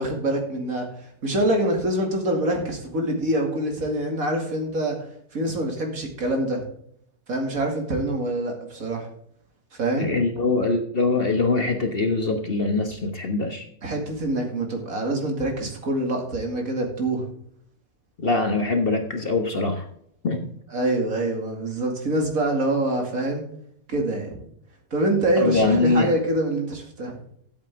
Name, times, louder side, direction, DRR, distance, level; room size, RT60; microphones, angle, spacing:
voice 1, 0.0-5.0 5.3-6.6 7.3-9.1 9.8-10.1 13.8-17.3 20.7-23.4 23.9-24.5 24.9-27.2, right 1 dB, 60° right, 2 dB, 2.7 m, -25 dB
voice 2, 9.9-13.7 18.2-19.9 20.2-20.4 25.4-26.1, left 3 dB, 40° left, 5 dB, 1.2 m, -23 dB
13.0 x 8.0 x 3.6 m, 0.65 s
omnidirectional pair, 1.6 m